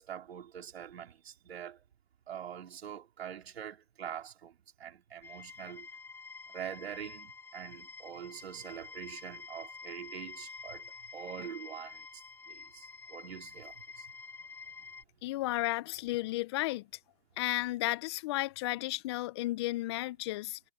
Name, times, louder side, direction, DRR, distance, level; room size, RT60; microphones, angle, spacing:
voice 1, 0.0-1.8 2.3-5.9 6.5-14.1, right 9 dB, 65° right, 3.6 m, -44 dB
sound 1, 5.2-15.0, left 5 dB, 5° left, 4.4 m, -48 dB
voice 2, 15.2-16.9 17.4-20.6, left 18 dB, 25° left, 0.6 m, -33 dB
hypercardioid pair, 145°, 34 cm